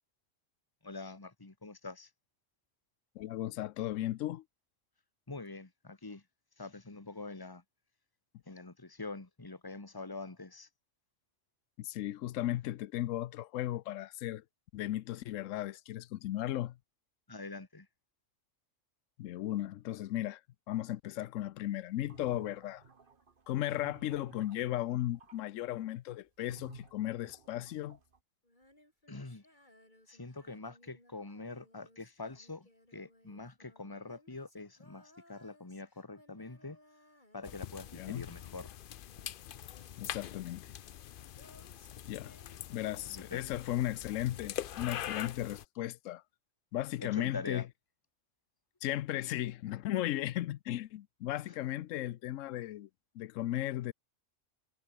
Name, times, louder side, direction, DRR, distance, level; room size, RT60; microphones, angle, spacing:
voice 1, 0.8-2.1 5.3-6.2 6.6-7.6 8.5-10.7 17.3-17.9 29.1-29.4 30.1-36.8 37.3-38.7 43.1-43.4 47.0-47.7 51.5-51.6, left 3 dB, 15° left, 1.7 m, -45 dB
voice 2, 3.2-4.4 11.8-14.4 14.7-16.8 19.2-20.4 20.7-22.8 23.5-28.0 38.0-38.3 40.0-40.7 42.1-42.4 42.7-46.2 46.7-47.6 48.8-52.9 53.1-53.9, left 14 dB, 85° left, 1.0 m, -36 dB
sound 1, 21.9-25.4 26.5-28.2, right 5 dB, 45° right, 1.6 m, -55 dB
Female singing, 28.4-43.8 45.3-45.4, left 1 dB, 35° left, 6.9 m, -64 dB
sound 2, 37.4-45.7, left 11 dB, 55° left, 0.6 m, -44 dB
omnidirectional pair, 1.3 m